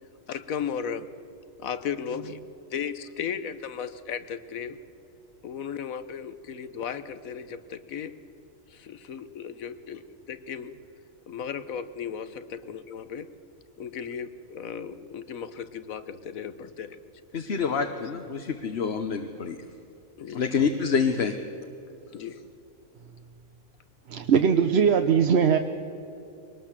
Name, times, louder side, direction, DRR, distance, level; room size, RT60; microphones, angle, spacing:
voice 1, 0.3-1.1 1.6-2.4 2.7-4.8 5.4-8.1 8.7-10.0 10.3-10.7 11.3-13.3 13.8-17.0 20.2-20.4 22.1-22.4, left 7 dB, 90° left, 13 dB, 1.4 m, -35 dB
voice 2, 17.3-19.6 20.3-21.3, left 5 dB, 55° left, 6 dB, 1.2 m, -27 dB
voice 3, 24.1-25.6, right 7 dB, 55° right, 7 dB, 1.0 m, -20 dB
23.0 x 19.5 x 7.4 m, 2.7 s
omnidirectional pair, 1.4 m